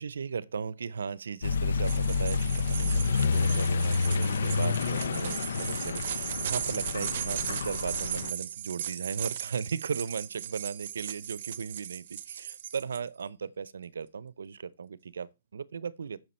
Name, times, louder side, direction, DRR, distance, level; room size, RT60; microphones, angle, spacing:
voice 1, 0.0-16.2, right 6 dB, 85° right, 0.6 m, -37 dB
Accelerating revving vroom, 1.4-8.3, left 4 dB, 70° left, 0.7 m, -29 dB
sound 1, 1.8-13.0, right 10 dB, 45° right, 0.7 m, -37 dB
9.6 x 6.5 x 4.3 m
hypercardioid pair, 170°, 0 cm